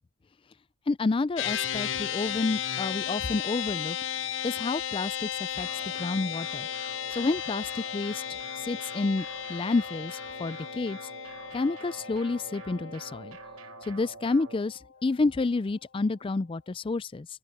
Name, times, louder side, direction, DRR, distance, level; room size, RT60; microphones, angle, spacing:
voice 1, 0.9-4.0 4.4-5.7 6.0-6.7 7.1-8.2 8.6-11.0 11.5-13.4 13.9-17.3, left 3 dB, 25° left, 0.3 m, -29 dB
sound 1, 1.4-14.9, left 9 dB, 60° left, 0.7 m, -35 dB
sound 2, 5.6-14.6, right 5 dB, 80° right, 1.1 m, -47 dB
open air
head